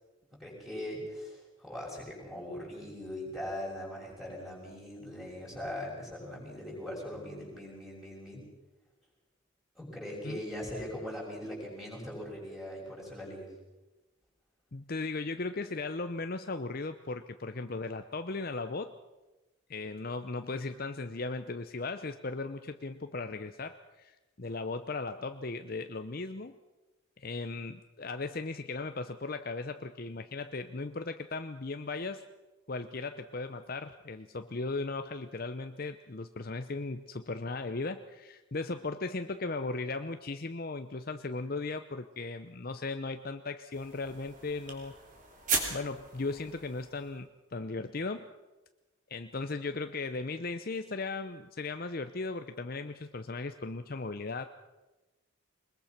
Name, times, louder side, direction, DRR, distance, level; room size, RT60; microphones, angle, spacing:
voice 1, 0.4-8.4 9.8-13.5, left 1 dB, ahead, -3 dB, 6.2 m, -40 dB
voice 2, 14.7-18.9 19.7-26.5 27.2-32.2 32.7-45.0 45.7-48.2 49.1-54.5, left 3 dB, 45° left, 9 dB, 0.7 m, -37 dB
sound 1, 43.7-47.3, right 4 dB, 40° right, 3.1 m, -37 dB
22.0 x 21.0 x 5.9 m, 1.1 s
head